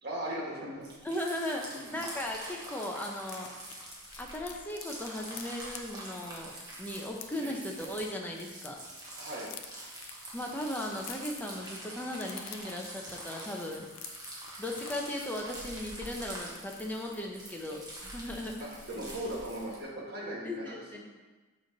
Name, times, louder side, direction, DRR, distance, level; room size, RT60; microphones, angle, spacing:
voice 1, 0.0-1.0 1.6-2.0 7.4-7.5 9.2-9.5 18.9-20.6 20.9-21.0, right 1 dB, 45° right, -4 dB, 1.6 m, -38 dB
sound 1, 0.8-19.8, right 1 dB, 20° right, 1.1 m, -45 dB
voice 2, 1.0-3.5 4.2-8.8 10.3-13.9 14.6-18.7 20.4-21.0, left 1 dB, 10° left, 0 dB, 0.7 m, -37 dB
sound 2, 2.0-2.1 2.4-2.5 2.7-8.7 9.0-17.2 17.6-17.7 18.0-18.2, left 8 dB, 65° left, 0.5 m, -50 dB
6.8 x 3.2 x 5.3 m, 1.2 s
head